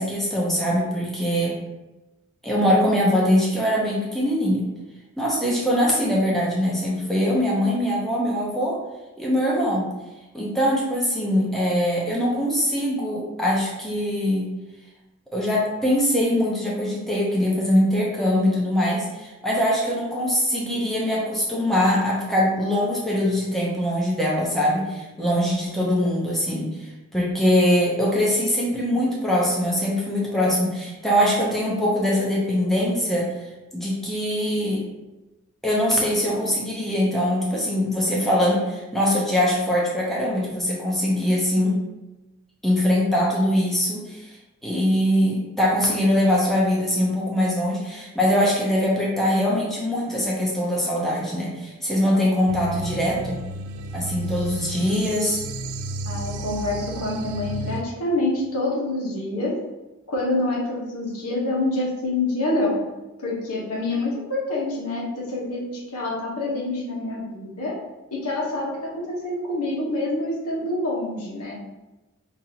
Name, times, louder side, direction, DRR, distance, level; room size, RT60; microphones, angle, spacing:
voice 1, 0.0-1.6 2.4-4.7 5.2-8.8 9.2-9.9 10.3-14.5 15.3-34.8 35.6-41.8 42.6-44.4 44.6-53.4 53.9-55.4, equal, ahead, -5 dB, 0.6 m, -22 dB
sound 1, 52.5-57.8, right 2 dB, 80° right, 0.3 m, -33 dB
voice 2, 56.1-59.5 60.1-62.8 63.2-67.7 68.1-71.6, left 2 dB, 85° left, -4 dB, 1.2 m, -26 dB
5.3 x 2.6 x 2.8 m, 1.1 s
head